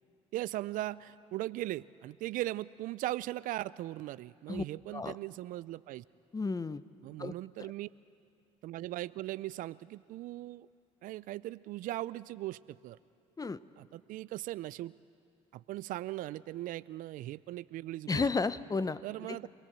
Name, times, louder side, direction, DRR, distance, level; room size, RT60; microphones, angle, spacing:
voice 1, 0.3-6.0 7.0-7.9 8.6-10.7 11.0-13.0 13.8-14.9 15.5-18.2 19.0-19.5, right 16 dB, 70° right, 19 dB, 0.4 m, -39 dB
voice 2, 6.3-6.8 7.2-7.3 13.4-13.6 18.1-19.0 19.3-19.4, left 4 dB, 25° left, 15 dB, 0.8 m, -32 dB
26.5 x 17.5 x 7.5 m, 2.5 s
hypercardioid pair, 60°, 15 cm